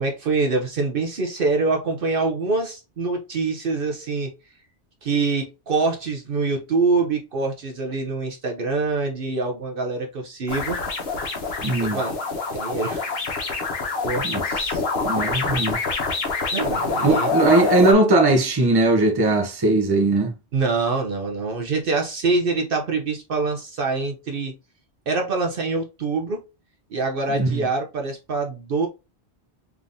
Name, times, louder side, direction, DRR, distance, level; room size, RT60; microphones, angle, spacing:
voice 1, 0.0-4.3 5.0-10.8 11.8-12.2 12.5-13.1 14.0-14.3 16.5-17.3 20.5-24.6 25.1-26.5 26.9-28.9, right 3 dB, 55° right, 0.8 m, -25 dB
sound 1, 10.5-17.9, left 3 dB, 60° left, 1.2 m, -26 dB
voice 2, 11.6-12.0 14.2-14.4 14.7-15.8 17.0-20.3 27.3-27.6, right 2 dB, 25° right, 0.7 m, -19 dB
3.7 x 3.5 x 2.6 m
omnidirectional pair, 1.2 m